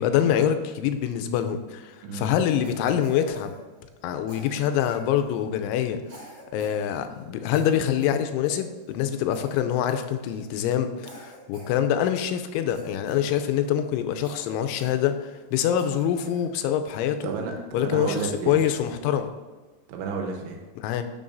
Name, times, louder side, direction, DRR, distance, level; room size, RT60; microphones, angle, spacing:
voice 1, 0.0-3.6 4.0-6.0 6.5-17.3 17.7-19.3 20.8-21.0, left 9 dB, 90° left, 8 dB, 3.0 m, -25 dB
Cough, 2.6-4.0 4.3-5.5 6.0-6.8 7.1-7.2 7.5-9.1 9.3-9.6 9.9-10.5 11.0-12.2 12.7-13.8 14.2-15.5 15.7-16.4 16.9-17.4 17.9-18.8, equal, 50° right, 2.3 m, -46 dB
voice 2, 17.2-18.6 19.9-20.6, right 5 dB, 85° right, 2 dB, 3.3 m, -31 dB
11.0 x 6.1 x 2.6 m, 1.3 s
omnidirectional pair, 5.4 m